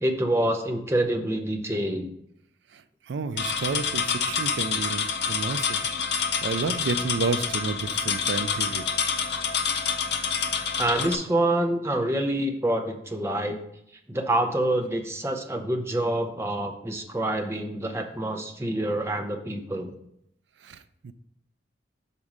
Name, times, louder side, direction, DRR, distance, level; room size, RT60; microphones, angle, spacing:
voice 1, 0.0-2.1 6.0-6.1 10.8-13.6 14.1-19.9, right 1 dB, 15° right, 4 dB, 0.6 m, -26 dB
voice 2, 2.7-8.9 20.6-21.1, right 4 dB, 75° right, 12 dB, 0.4 m, -31 dB
sound 1, 3.4-11.2, left 6 dB, 60° left, 0.6 m, -27 dB
6.0 x 4.2 x 4.9 m, 0.75 s
head